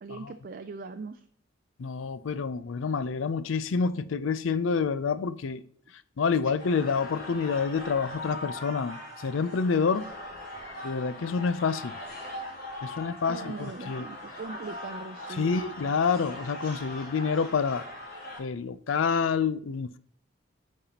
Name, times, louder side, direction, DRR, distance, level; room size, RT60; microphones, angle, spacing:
voice 1, 0.0-1.2 13.3-15.6, right 4 dB, 45° right, 0.4 m, -40 dB
voice 2, 1.8-5.6 6.2-10.1 10.8-11.9 12.8-14.1 15.4-17.8 18.4-20.0, left 5 dB, 80° left, 0.4 m, -28 dB
sound 1, 6.6-18.4, left 1 dB, 50° left, 2.8 m, -40 dB
8.9 x 5.4 x 2.8 m
head